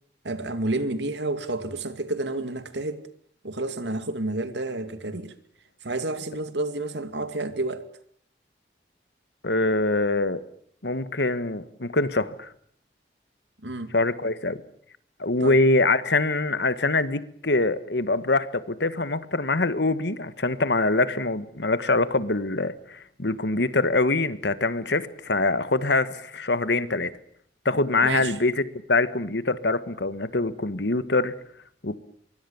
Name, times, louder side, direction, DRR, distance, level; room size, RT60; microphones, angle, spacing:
voice 1, 0.2-3.0 3.4-5.3 5.8-7.9 13.6-13.9 15.4-15.6 28.0-28.3, right 2 dB, 75° right, 2.5 m, -30 dB
voice 2, 9.4-10.4 10.8-12.5 13.9-14.6 15.2-27.1 27.6-28.6 28.9-31.3 31.8-32.0, left 2 dB, 75° left, 1.6 m, -24 dB
25.0 x 23.0 x 7.1 m
head